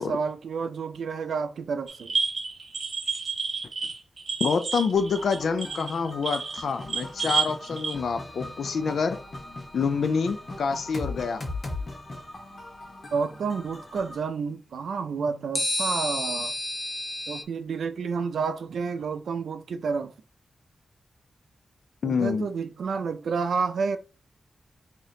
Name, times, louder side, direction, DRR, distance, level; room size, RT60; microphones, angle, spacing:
voice 1, 0.0-2.1 13.1-16.5 17.3-20.1 22.0-24.0, right 5 dB, 85° right, 0.4 m, -30 dB
sound 1, 1.9-7.9, right 5 dB, 50° right, 1.1 m, -30 dB
voice 2, 4.4-9.2 9.7-11.4 22.0-22.5, left 5 dB, 80° left, 0.4 m, -27 dB
sound 2, 4.9-14.2, left 2 dB, 45° left, 1.1 m, -39 dB
sound 3, 7.9-9.1 15.5-17.4, left 1 dB, 20° left, 0.5 m, -32 dB
4.9 x 2.8 x 2.7 m
wide cardioid pair, 95°, 0 cm